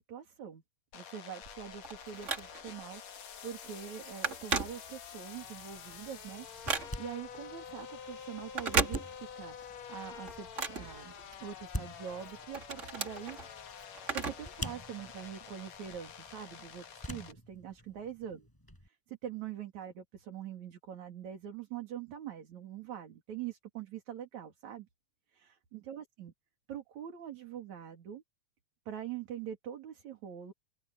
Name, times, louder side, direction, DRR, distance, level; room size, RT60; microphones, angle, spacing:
voice 1, 0.1-0.6 0.9-11.1 11.4-13.7 14.1-18.4 19.1-24.9 25.3-26.3 26.7-28.2 28.9-30.5, right 9 dB, 65° right, 4.1 m, -44 dB
sound 1, 0.9-17.3, left 8 dB, 60° left, 2.9 m, -48 dB
Telephone, 1.4-2.9 3.3-3.5 3.8-5.3 5.7-7.3 8.4-9.5 9.9-11.6 12.1-14.6 14.9-15.0 15.9-16.0, right 4 dB, 30° right, 1.5 m, -36 dB
sound 2, 5.3-18.9, equal, 5° left, 7.8 m, -48 dB
open air
omnidirectional pair, 3.6 m